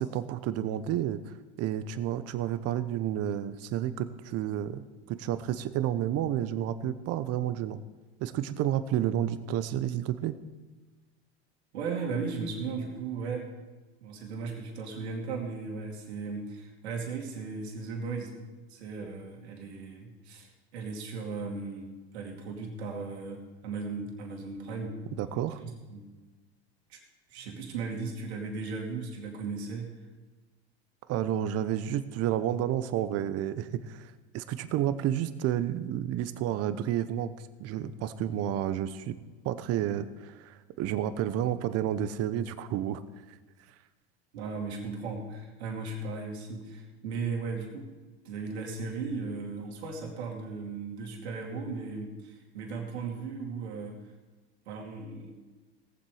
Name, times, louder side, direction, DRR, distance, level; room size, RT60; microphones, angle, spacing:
voice 1, 0.0-7.8 8.2-10.3 25.2-25.6 31.1-37.3 37.6-39.2 39.4-43.0, right 11 dB, 50° right, 13 dB, 0.9 m, -30 dB
voice 2, 11.7-13.5 14.0-18.3 18.7-25.0 25.6-26.1 26.9-27.0 27.3-29.9 44.3-47.9 48.2-54.0 54.7-55.3, right 4 dB, 80° right, 1 dB, 2.5 m, -36 dB
18.0 x 7.5 x 4.9 m, 1.3 s
hypercardioid pair, 90°, 32 cm